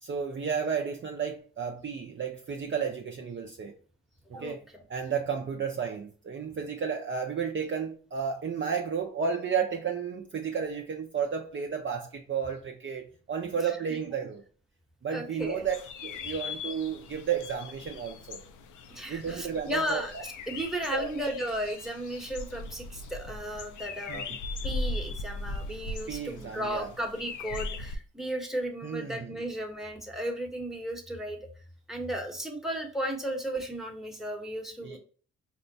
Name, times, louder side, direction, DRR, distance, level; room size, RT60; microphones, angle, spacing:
voice 1, 0.0-3.7 4.4-4.6 4.9-14.4 15.0-15.7 16.0-18.4 19.1-20.2 20.9-21.1 24.1-24.4 26.1-26.9 28.8-29.3 34.8-35.0, right 6 dB, 35° right, 0.5 m, -32 dB
voice 2, 15.1-15.6 18.9-20.1 20.5-24.3 24.6-31.4 31.9-35.0, equal, ahead, 0.9 m, -34 dB
sound 1, 15.4-28.0, left 3 dB, 65° left, 0.5 m, -39 dB
4.3 x 2.1 x 2.6 m
supercardioid pair, 45°, 33 cm